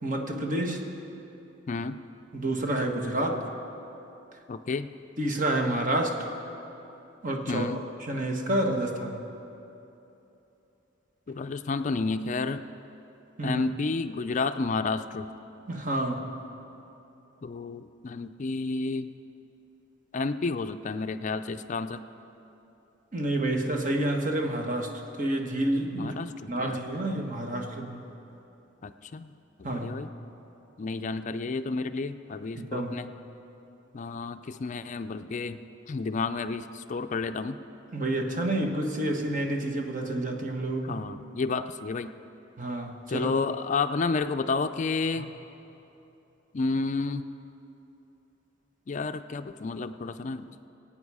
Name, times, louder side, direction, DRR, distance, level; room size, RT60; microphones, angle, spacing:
voice 1, 0.0-0.8 2.3-3.5 5.2-6.3 7.2-7.7 8.0-9.2 13.4-13.6 15.7-16.4 23.1-26.1 26.5-28.1 29.6-29.9 32.5-33.0 37.9-41.0 42.6-43.3 45.2-45.3, right 1 dB, 45° right, 2 dB, 1.3 m, -29 dB
voice 2, 1.7-2.0 4.5-4.9 7.5-7.8 11.3-12.6 13.4-15.3 17.4-19.1 20.1-22.0 25.9-26.8 28.8-29.3 29.6-30.1 30.8-33.1 33.9-35.6 35.9-37.6 40.8-42.1 43.1-45.3 46.5-47.2 48.9-50.4, left 4 dB, 40° left, 10 dB, 0.4 m, -31 dB
23.0 x 8.8 x 4.8 m, 2.9 s
head